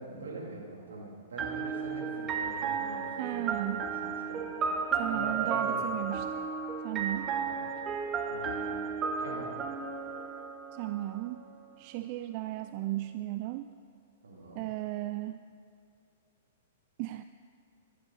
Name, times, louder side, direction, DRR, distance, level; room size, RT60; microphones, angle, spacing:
voice 1, 0.0-4.4 5.1-6.0 7.4-7.6 8.3-8.9 9.2-9.6 14.2-14.6, right 2 dB, 80° right, -1 dB, 2.7 m, -43 dB
sound 1, 1.4-11.2, right 5 dB, 25° right, 1.0 m, -33 dB
voice 2, 3.2-3.8 4.9-6.3 6.8-7.3 10.7-11.4 11.8-13.7 14.6-15.4 17.0-17.2, right 16 dB, 45° right, 11 dB, 0.3 m, -35 dB
15.0 x 11.5 x 4.0 m, 2.4 s
hypercardioid pair, 115°, 0 cm